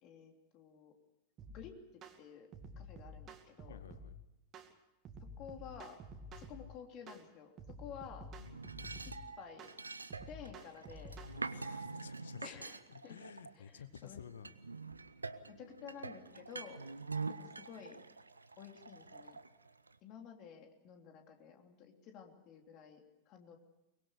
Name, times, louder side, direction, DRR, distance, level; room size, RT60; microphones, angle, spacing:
voice 1, 0.0-0.9 1.5-2.5 2.8-3.8 5.2-6.0 6.4-9.7 10.2-11.2 12.4-13.2 13.5-14.2 15.5-16.8 17.3-18.0 18.6-19.4 20.0-23.6, left 7 dB, 40° left, 4 dB, 3.2 m, -52 dB
sound 1, 1.4-1.6 2.0-2.2 2.5-4.1 4.5-4.7 5.1-6.7 7.1-7.3 7.6-9.2 9.6-9.8 10.1-11.4, right 1 dB, 30° right, 2.4 m, -50 dB
voice 2, 3.7-4.1 11.3-12.4 12.9-14.5, left 8 dB, 65° left, 13 dB, 1.1 m, -52 dB
sound 2, 8.4-14.0 14.4-20.0, right 4 dB, 80° right, 0.9 m, -46 dB
23.5 x 21.5 x 6.5 m, 0.95 s
figure-of-eight pair, 90°, 0 cm